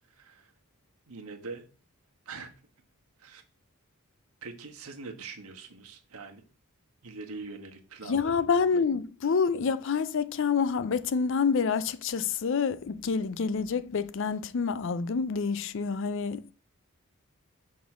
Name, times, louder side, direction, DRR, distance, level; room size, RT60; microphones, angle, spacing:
voice 1, 0.2-0.5 1.1-1.6 2.2-2.5 3.2-3.4 4.4-6.4 7.0-8.5, right 4 dB, 85° right, 1.3 m, -43 dB
voice 2, 8.1-16.5, left 5 dB, 55° left, 0.4 m, -27 dB
6.2 x 3.7 x 5.9 m
head